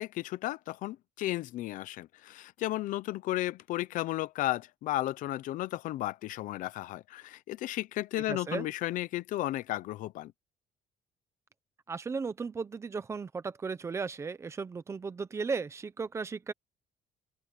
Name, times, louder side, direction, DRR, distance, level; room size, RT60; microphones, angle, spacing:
voice 1, 0.0-10.3, left 15 dB, 70° left, 0.7 m, -34 dB
voice 2, 8.3-8.7 11.9-16.5, right 5 dB, 20° right, 0.8 m, -35 dB
open air
cardioid pair, 180°, 14 cm